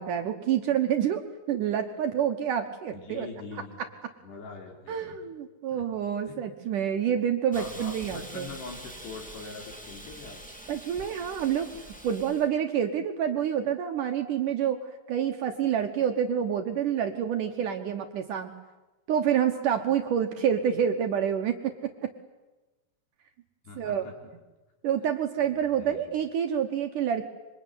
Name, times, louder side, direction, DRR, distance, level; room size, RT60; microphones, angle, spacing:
voice 1, 0.0-3.3 3.8-3.9 4.9-8.5 10.7-11.7 12.0-14.8 15.1-18.5 19.1-22.1 23.8-24.1 24.8-27.2, right 9 dB, 65° right, 5 dB, 2.2 m, -28 dB
voice 2, 2.9-3.8 4.2-5.1 5.7-5.9 6.3-6.4 7.5-10.4 23.6-24.1 25.4-26.1, left 4 dB, 75° left, 2 dB, 6.3 m, -43 dB
Hiss, 7.5-12.5, right 1 dB, 5° left, 1.1 m, -45 dB
26.5 x 24.0 x 9.5 m, 1.1 s
omnidirectional pair, 4.8 m